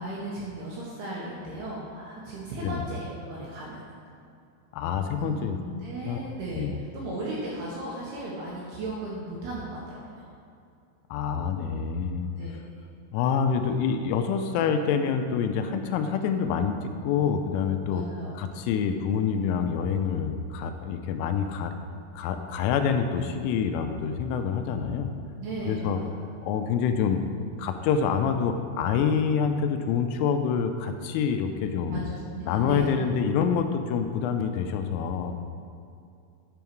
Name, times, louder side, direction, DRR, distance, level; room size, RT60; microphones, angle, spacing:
voice 1, 0.0-3.8 5.2-10.3 12.3-12.6 17.9-18.6 25.4-26.3 31.9-32.0 32.3-32.9, right 2 dB, 75° right, -5 dB, 2.5 m, -36 dB
voice 2, 4.7-5.6 6.0-6.3 6.6-6.7 11.1-12.3 13.1-18.0 18.4-21.7 22.2-25.1 25.7-26.0 26.5-27.2 27.6-32.0 32.5-35.3, left 6 dB, 85° left, 7 dB, 3.0 m, -26 dB
9.3 x 5.4 x 4.5 m, 2.5 s
omnidirectional pair, 5.8 m